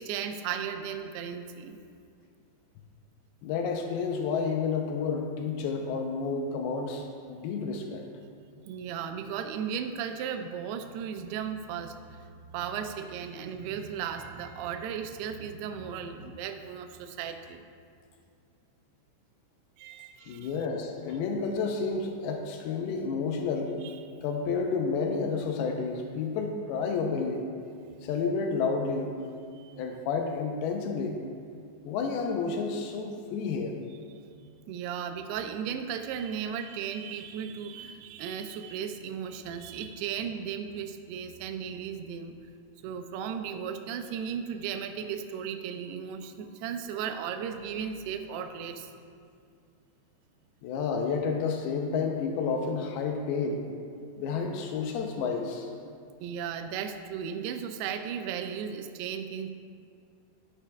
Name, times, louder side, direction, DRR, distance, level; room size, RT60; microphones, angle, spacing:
voice 1, 0.0-1.8 8.7-12.3 12.5-17.6 19.8-20.6 23.8-24.0 29.6-29.8 34.7-42.4 42.8-48.9 56.2-59.5, right 7 dB, 85° right, 7 dB, 2.3 m, -36 dB
voice 2, 3.4-7.0 7.3-8.0 20.3-23.7 24.2-27.5 28.0-29.1 29.8-31.2 31.9-33.8 50.6-53.7 54.2-55.7, left 5 dB, 90° left, 3 dB, 2.2 m, -30 dB
13.0 x 10.5 x 2.3 m, 2.3 s
omnidirectional pair, 5.2 m